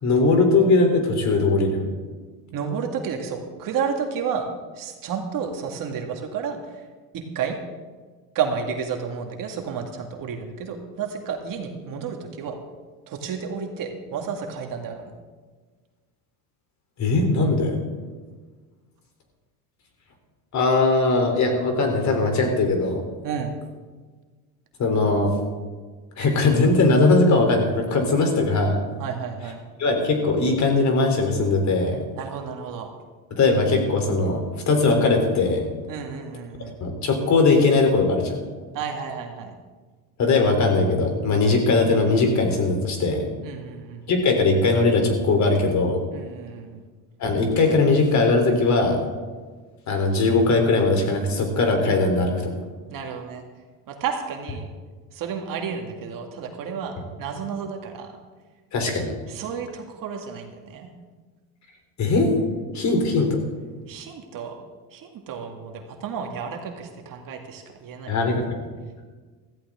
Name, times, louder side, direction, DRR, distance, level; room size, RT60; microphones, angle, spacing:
voice 1, 0.0-1.9 17.0-17.8 20.5-23.0 24.8-25.3 26.2-28.8 29.8-32.0 33.4-35.7 36.8-38.4 40.2-43.3 44.1-46.0 47.2-49.0 49.9-52.5 58.7-59.1 62.0-62.3 62.7-63.4 68.1-68.6, left 3 dB, 40° left, 4 dB, 3.5 m, -20 dB
voice 2, 2.5-4.5 4.8-6.6 7.1-7.6 8.3-12.6 13.1-15.1 23.2-23.6 29.0-29.6 32.2-32.9 35.9-36.8 38.7-39.6 43.4-44.1 46.1-46.8 52.9-53.4 53.9-54.7 55.1-58.1 59.3-60.9 63.9-64.6 64.9-68.1, right 6 dB, 50° right, 3 dB, 2.2 m, -31 dB
16.0 x 14.5 x 3.7 m, 1.4 s
supercardioid pair, 110°, 41 cm